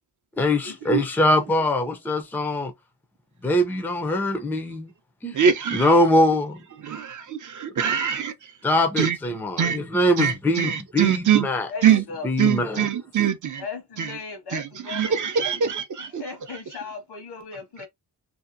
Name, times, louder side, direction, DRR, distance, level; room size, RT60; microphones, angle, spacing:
voice 1, 0.4-2.7 3.4-4.9 5.2-5.4 5.7-6.6 8.6-11.7 12.2-12.8, left 1 dB, 5° left, 0.4 m, -22 dB
voice 2, 5.3-5.9 6.8-8.3 9.0-9.2 9.6-9.9 10.2-11.5 11.8-12.0 12.4-13.6 14.0-14.1 14.5-16.2, right 8 dB, 50° right, 0.5 m, -23 dB
voice 3, 11.7-12.3 13.6-15.6 16.0-17.9, left 4 dB, 75° left, 1.1 m, -37 dB
2.7 x 2.4 x 2.5 m
wide cardioid pair, 155°, 40 cm